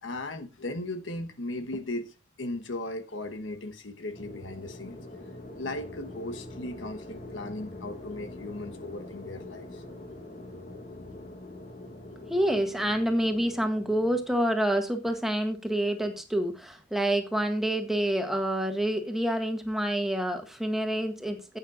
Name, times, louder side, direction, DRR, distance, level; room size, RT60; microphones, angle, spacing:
voice 1, 0.0-5.0 5.5-9.8 10.2-10.3 12.2-12.5, left 2 dB, 90° left, 1.2 m, -37 dB
sound 1, 4.1-14.2, left 1 dB, 45° left, 1.8 m, -44 dB
voice 2, 12.3-21.6, right 1 dB, ahead, 1.7 m, -27 dB
16.0 x 8.9 x 2.5 m
head